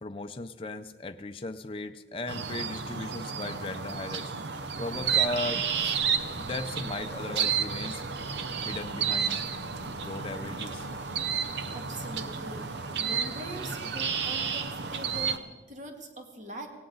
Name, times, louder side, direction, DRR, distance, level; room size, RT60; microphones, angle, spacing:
voice 1, 0.0-4.3 4.8-5.6 6.3-8.0 8.6-9.4 9.9-10.9, left 2 dB, 30° left, 7 dB, 0.5 m, -37 dB
sound 1, 2.3-15.4, right 6 dB, 80° right, 0.8 m, -31 dB
sound 2, 4.9-15.4, equal, 10° right, 6.8 m, -54 dB
voice 2, 11.4-16.7, right 1 dB, 45° right, 4 dB, 1.8 m, -43 dB
18.0 x 17.0 x 3.9 m, 1.3 s
head